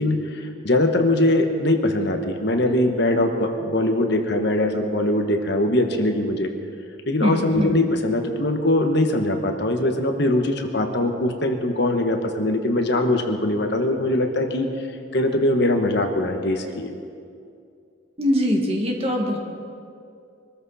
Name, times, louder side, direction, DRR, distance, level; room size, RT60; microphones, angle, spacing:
voice 1, 0.0-6.5 7.1-14.7 15.1-16.9, left 1 dB, 55° left, 5 dB, 1.3 m, -22 dB
voice 2, 7.2-7.8 18.2-19.4, equal, 30° right, 1 dB, 1.9 m, -22 dB
23.5 x 13.5 x 4.2 m, 2.4 s
head